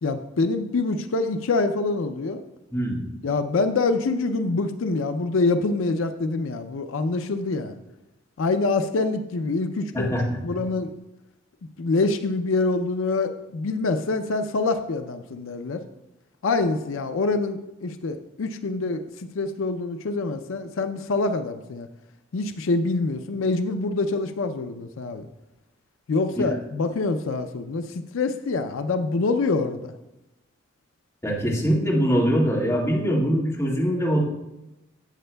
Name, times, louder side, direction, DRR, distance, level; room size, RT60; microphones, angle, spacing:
voice 1, 0.0-2.4 3.2-7.7 8.4-10.1 10.4-10.9 11.8-15.8 16.4-21.9 22.3-25.3 26.1-29.9, left 3 dB, 80° left, 8 dB, 0.5 m, -25 dB
voice 2, 9.9-10.4 26.4-26.5 31.2-34.2, equal, 15° left, -5 dB, 1.8 m, -23 dB
13.0 x 7.9 x 2.2 m, 0.95 s
head